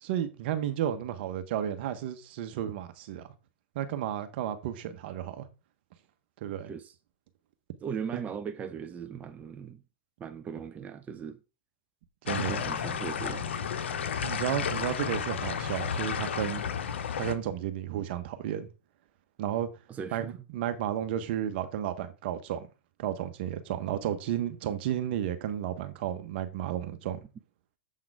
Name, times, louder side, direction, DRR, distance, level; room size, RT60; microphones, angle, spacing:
voice 1, 0.0-3.2 3.7-5.5 6.4-6.7 12.2-12.6 14.2-16.6 17.2-18.7 19.4-19.7 20.1-22.7 23.0-27.2, right 10 dB, 60° right, 1.2 m, -32 dB
voice 2, 7.8-9.8 10.2-11.4 12.5-13.5 19.9-20.3, right 7 dB, 25° right, 0.6 m, -38 dB
sound 1, 12.3-17.3, left 7 dB, 80° left, 0.9 m, -32 dB
7.6 x 3.9 x 4.8 m
hypercardioid pair, 115°, 6 cm